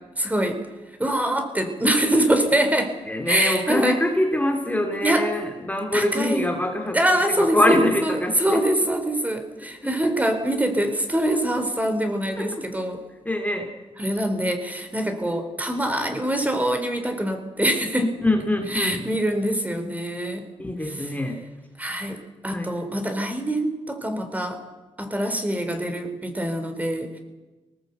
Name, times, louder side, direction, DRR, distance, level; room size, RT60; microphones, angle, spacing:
voice 1, 0.2-0.6 1.0-2.9 3.3-4.0 5.0-5.3 5.9-6.5 6.9-13.0 14.0-18.1 18.7-20.4 21.8-24.6 25.0-27.1, right 1 dB, 15° right, 6 dB, 3.9 m, -24 dB
voice 2, 3.1-8.6 12.4-12.6 13.2-13.7 18.0-19.1 20.6-21.4 22.5-22.7, left 1 dB, 15° left, 3 dB, 2.8 m, -24 dB
22.5 x 19.0 x 8.1 m, 1.2 s
cardioid pair, 65°, 11 cm